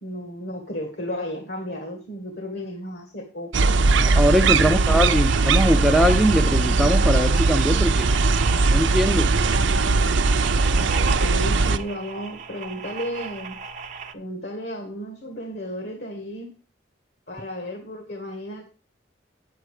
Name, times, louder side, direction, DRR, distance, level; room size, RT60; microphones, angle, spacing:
voice 1, 0.0-3.8 4.6-5.0 11.0-13.6 14.1-16.5 17.3-18.7, equal, 60° left, 1.9 m, -33 dB
sound 1, 3.5-11.8, right 3 dB, 85° right, 0.7 m, -19 dB
voice 2, 3.9-8.1 8.7-9.4, equal, ahead, 0.7 m, -21 dB
sound 2, 4.7-14.1, right 6 dB, 40° right, 0.9 m, -36 dB
9.4 x 7.8 x 4.9 m
head